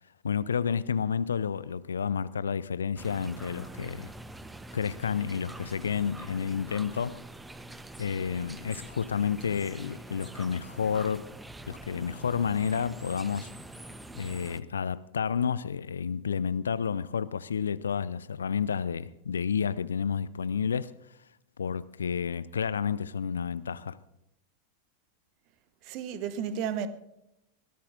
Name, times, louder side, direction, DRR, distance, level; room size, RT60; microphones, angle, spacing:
voice 1, 0.2-4.1 4.7-7.2 8.0-11.3 11.7-13.5 14.1-20.9 21.6-24.0, left 7 dB, 70° left, 0.4 m, -30 dB
sound 1, 3.0-14.6, right 1 dB, 10° right, 0.8 m, -45 dB
voice 2, 25.8-26.9, right 8 dB, 45° right, 1.1 m, -32 dB
23.5 x 17.5 x 2.5 m
figure-of-eight pair, 90°, 0 cm